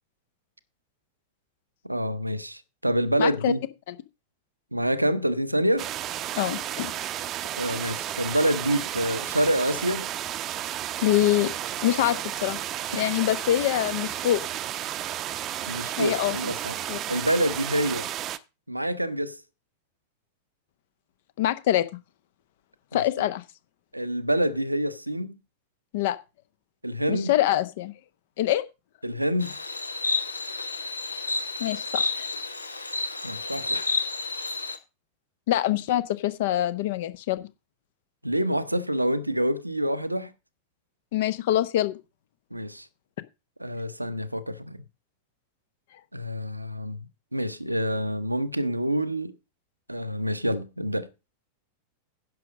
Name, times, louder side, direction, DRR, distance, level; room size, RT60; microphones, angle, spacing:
voice 1, 1.8-3.6 4.7-5.9 7.6-10.1 12.9-13.1 15.6-16.7 17.1-18.1 18.7-19.4 22.9-23.0 23.9-25.3 26.8-27.3 29.0-29.6 33.2-33.9 38.2-40.3 42.5-42.9 43.6-44.8 46.1-49.3 49.9-51.1, equal, 85° right, 0.8 m, -27 dB
voice 2, 3.2-3.5 3.9-4.0 6.3-6.9 11.0-11.5 11.8-12.6 12.9-14.4 16.0-16.4 16.9-17.0 21.4-21.9 22.9-23.4 25.9-26.2 27.1-27.9 28.4-28.6 31.6-32.3 35.5-37.5 41.1-41.9, left 13 dB, 55° left, 0.9 m, -24 dB
sound 1, 5.8-18.4, right 12 dB, 35° right, 0.7 m, -33 dB
Insect, 29.4-34.8, left 3 dB, 80° left, 1.1 m, -30 dB
10.5 x 6.4 x 5.1 m
figure-of-eight pair, 90°, 0 cm